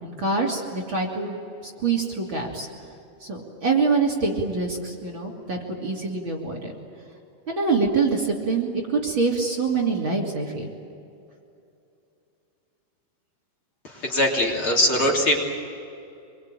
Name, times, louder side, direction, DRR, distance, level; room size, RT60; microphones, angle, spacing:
voice 1, 0.0-1.4 1.8-2.7 3.3-6.7 7.5-10.7, right 4 dB, 35° right, 1 dB, 3.3 m, -25 dB
voice 2, 13.8-15.5, left 1 dB, 40° left, -2 dB, 4.1 m, -22 dB
26.5 x 23.0 x 9.1 m, 2.6 s
omnidirectional pair, 3.9 m